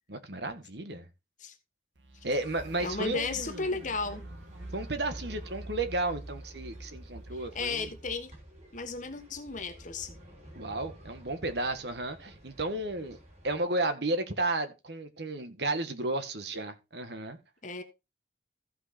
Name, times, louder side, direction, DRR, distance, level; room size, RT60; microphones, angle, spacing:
voice 1, 0.1-1.1 2.2-3.8 4.7-7.9 10.5-13.2 13.4-17.4, right 2 dB, 65° right, 1.6 m, -33 dB
sound 1, 2.0-8.2, right 1 dB, 90° right, 1.4 m, -46 dB
sound 2, 2.4-13.6, equal, 40° right, 3.8 m, -52 dB
voice 2, 2.8-4.2 7.3-8.3 8.7-10.2 17.6-17.8, left 3 dB, 45° left, 1.4 m, -34 dB
15.0 x 5.4 x 4.3 m
head